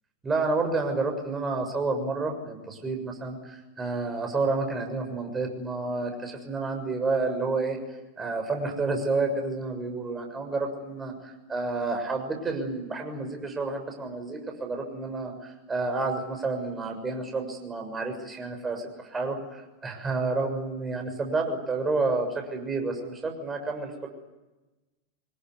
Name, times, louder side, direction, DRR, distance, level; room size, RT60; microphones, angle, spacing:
voice 1, 0.2-7.8 8.2-24.1, right 3 dB, 15° right, 4 dB, 6.8 m, -30 dB
26.0 x 21.5 x 9.7 m, 1.1 s
figure-of-eight pair, 90°, 0 cm